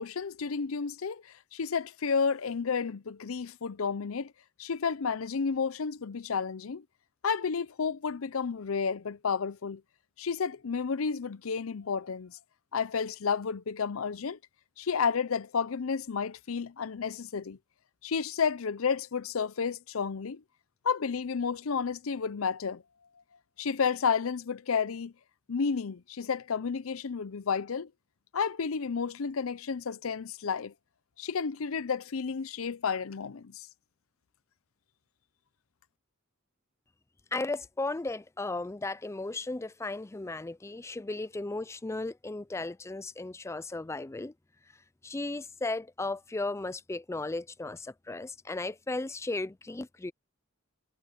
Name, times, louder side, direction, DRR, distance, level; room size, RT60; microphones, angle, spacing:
voice 1, 0.0-4.3 4.6-6.8 7.2-9.8 10.2-12.4 12.7-14.4 14.8-17.6 18.0-20.4 20.8-22.8 23.6-25.1 25.5-27.9 28.3-30.7 31.2-33.7, left 6 dB, 80° left, 0.6 m, -31 dB
voice 2, 37.3-44.3 45.0-50.1, left 2 dB, 15° left, 0.4 m, -35 dB
head